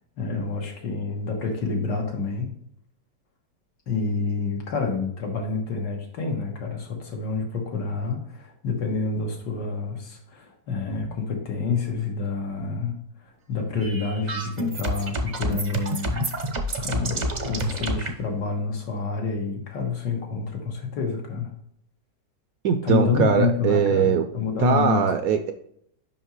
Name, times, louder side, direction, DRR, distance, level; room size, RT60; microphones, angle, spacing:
voice 1, 0.2-2.5 3.9-12.9 13.5-16.3 16.8-21.5 22.8-25.0, left 4 dB, 80° left, 1 dB, 2.0 m, -28 dB
sound 1, 13.8-18.1, right 1 dB, 40° right, 0.6 m, -28 dB
voice 2, 22.6-24.2 24.6-25.5, right 7 dB, 70° right, 8 dB, 0.8 m, -21 dB
5.6 x 5.5 x 3.0 m, 0.70 s
omnidirectional pair, 1.9 m